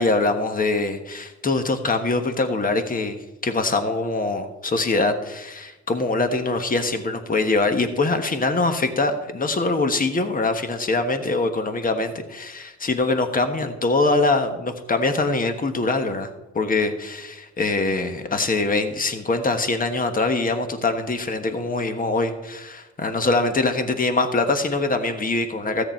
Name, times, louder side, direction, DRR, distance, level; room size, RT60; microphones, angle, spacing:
voice 1, 0.0-16.3 16.5-25.8, left 3 dB, 30° left, 7 dB, 1.3 m, -23 dB
13.5 x 9.0 x 4.5 m, 1.0 s
cardioid pair, 90°, 30 cm